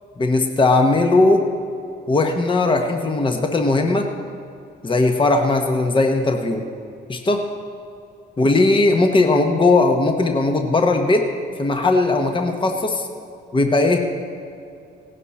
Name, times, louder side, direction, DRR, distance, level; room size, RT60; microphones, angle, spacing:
voice 1, 0.2-1.4 2.1-4.1 4.8-6.6 7.1-7.4 8.4-11.3 11.6-13.1 13.5-14.1, left 2 dB, 25° left, 4 dB, 1.1 m, -18 dB
17.5 x 10.5 x 4.2 m, 2.5 s
cardioid pair, 90°, 20 cm